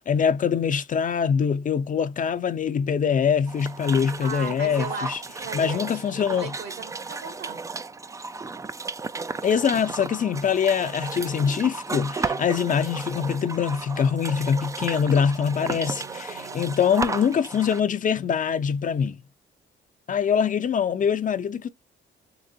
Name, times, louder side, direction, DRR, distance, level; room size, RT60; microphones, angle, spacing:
voice 1, 0.1-5.2 5.5-6.5 9.4-19.2 20.1-21.7, left 7 dB, 40° left, 0.5 m, -24 dB
sound 1, 3.5-17.8, right 4 dB, 15° right, 0.3 m, -34 dB
voice 2, 4.2-7.7 15.6-16.8, right 6 dB, 65° right, 1.8 m, -38 dB
3.9 x 2.9 x 2.5 m
cardioid pair, 90°, 20 cm